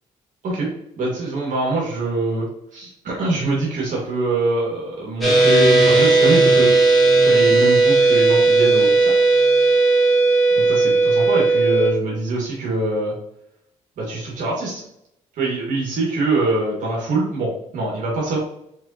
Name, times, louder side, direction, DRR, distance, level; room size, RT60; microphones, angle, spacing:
voice 1, 1.0-6.7 7.3-9.2 10.6-13.1 14.0-14.8 15.4-18.4, right 2 dB, 70° right, -3 dB, 1.8 m, -23 dB
sound 1, 5.2-11.9, right 3 dB, ahead, 1.6 m, -15 dB
4.6 x 3.8 x 2.8 m, 0.76 s
cardioid pair, 135°, 14 cm